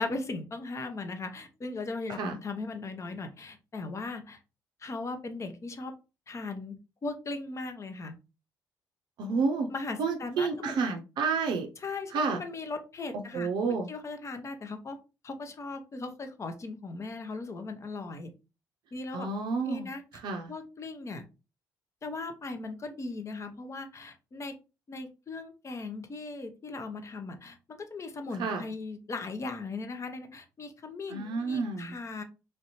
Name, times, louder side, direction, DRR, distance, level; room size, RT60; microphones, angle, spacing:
voice 1, 0.0-4.4 4.8-5.9 6.3-6.8 7.0-8.1 9.7-10.8 11.8-15.0 15.2-18.3 18.9-19.3 19.6-20.0 20.5-21.2 22.0-24.6 24.9-32.2, left 3 dB, 40° left, 7 dB, 0.8 m, -38 dB
voice 2, 9.2-9.7 10.0-11.7 12.1-12.4 13.3-13.9 19.1-19.9 20.2-20.5 28.4-28.6 31.1-31.9, right 4 dB, 70° right, 4 dB, 0.5 m, -30 dB
3.2 x 2.6 x 2.9 m, 0.30 s
supercardioid pair, 60°, 8 cm